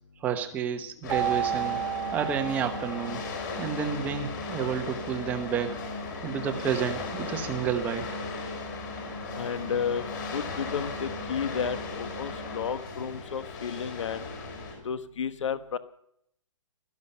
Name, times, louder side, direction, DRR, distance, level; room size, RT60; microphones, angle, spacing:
voice 1, 0.2-1.8 2.1-3.2 3.6-5.8 6.2-8.1, right 7 dB, 10° right, 6 dB, 1.0 m, -30 dB
sound 1, 1.0-14.7, left 3 dB, 35° left, 5.5 m, -36 dB
Keyboard (musical), 1.1-3.7, right 10 dB, 70° right, 1.3 m, -32 dB
voice 2, 9.4-10.0 10.3-14.2 14.8-15.8, left 7 dB, 70° left, 12 dB, 1.2 m, -32 dB
16.5 x 13.5 x 5.6 m, 0.73 s
hypercardioid pair, 175°, 16 cm